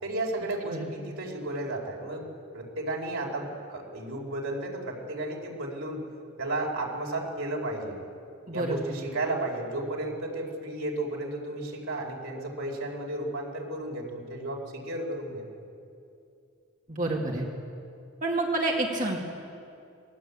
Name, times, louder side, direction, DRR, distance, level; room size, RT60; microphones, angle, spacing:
voice 1, 0.0-2.2 2.5-6.0 6.4-8.0 8.5-15.5, right 2 dB, 75° right, -1 dB, 4.9 m, -33 dB
voice 2, 8.5-8.8 16.9-17.5 18.2-19.2, right 2 dB, 35° right, -1 dB, 2.4 m, -28 dB
26.5 x 19.0 x 8.7 m, 2.6 s
head